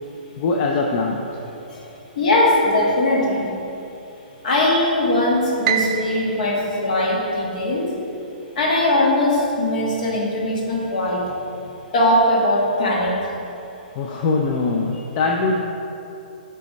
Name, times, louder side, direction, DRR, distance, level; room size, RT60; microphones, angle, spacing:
voice 1, 0.4-1.2 3.4-3.5 14.0-15.6, left 3 dB, 35° left, 0 dB, 0.5 m, -22 dB
voice 2, 2.2-3.5 4.4-7.9 8.6-11.2 11.9-13.1, left 1 dB, 55° left, -3 dB, 1.5 m, -20 dB
Piano, 5.6-7.9, right 8 dB, 40° right, 0.4 m, -27 dB
8.2 x 3.4 x 4.2 m, 2.8 s
figure-of-eight pair, 120°, 5 cm